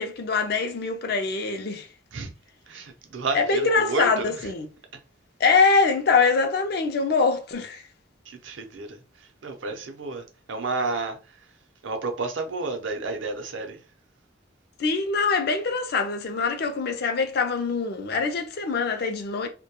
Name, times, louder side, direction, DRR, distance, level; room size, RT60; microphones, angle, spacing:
voice 1, 0.0-1.9 3.3-4.7 5.4-7.8 14.8-19.5, left 4 dB, 55° left, 0.4 m, -23 dB
voice 2, 2.7-4.5 8.3-11.5 11.8-13.8, right 3 dB, 75° right, 0.6 m, -31 dB
2.2 x 2.1 x 2.8 m
head